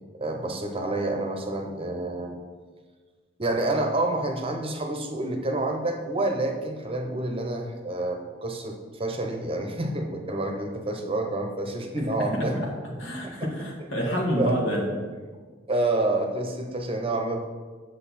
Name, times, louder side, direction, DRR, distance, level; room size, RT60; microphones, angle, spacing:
voice 1, 0.1-2.4 3.4-12.6 13.2-13.5 14.4-14.5 15.7-17.4, right 2 dB, 30° right, 3 dB, 0.9 m, -28 dB
voice 2, 12.3-12.7 13.0-14.9, equal, 75° left, -1 dB, 1.8 m, -28 dB
8.0 x 6.6 x 4.2 m, 1.5 s
head